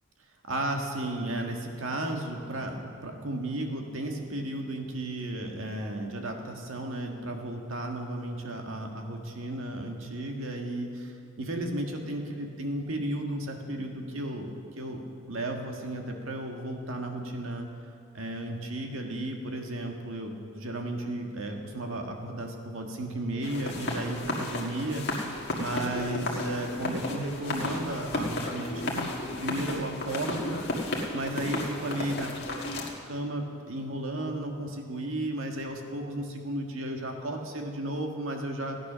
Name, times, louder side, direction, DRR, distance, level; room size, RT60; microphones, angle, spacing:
voice 1, 0.5-14.5 14.8-15.0 15.3-17.7 18.1-30.6 31.1-32.3 33.0-38.8, right 1 dB, 75° right, 2 dB, 1.7 m, -34 dB
sound 1, 23.4-32.9, left 1 dB, 55° left, 1.7 m, -33 dB
15.5 x 9.6 x 6.2 m, 2.4 s
head